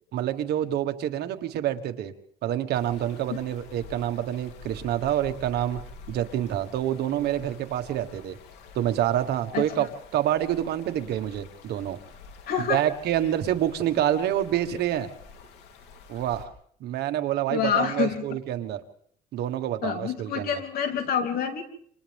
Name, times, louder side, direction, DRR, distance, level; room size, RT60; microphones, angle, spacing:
voice 1, 0.1-2.1 2.4-5.8 6.1-8.4 8.7-9.9 10.1-12.0 12.7-15.1 16.1-16.5 16.8-18.8 19.3-20.6, right 11 dB, 75° right, 8 dB, 1.6 m, -27 dB
sound 1, 2.7-16.5, left 4 dB, 85° left, 3.2 m, -48 dB
voice 2, 9.5-9.9 12.5-12.8 17.5-18.2 19.8-21.6, left 7 dB, 60° left, 4 dB, 3.4 m, -27 dB
28.0 x 26.5 x 3.6 m, 0.62 s
cardioid pair, 110°, 17 cm